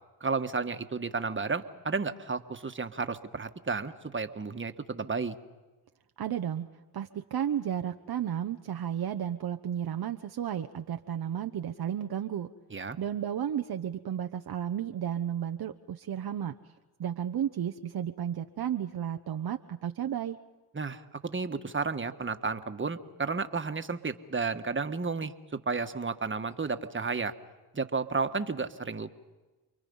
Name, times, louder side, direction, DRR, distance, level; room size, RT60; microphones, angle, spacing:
voice 1, 0.2-5.3 12.7-13.0 20.7-27.3 27.7-29.1, right 4 dB, 25° right, 8 dB, 1.7 m, -32 dB
voice 2, 6.2-6.7 6.9-12.5 13.0-16.5 17.0-20.4, right 9 dB, 50° right, 6 dB, 1.0 m, -33 dB
29.0 x 23.0 x 5.6 m, 1.2 s
hypercardioid pair, 50°, 49 cm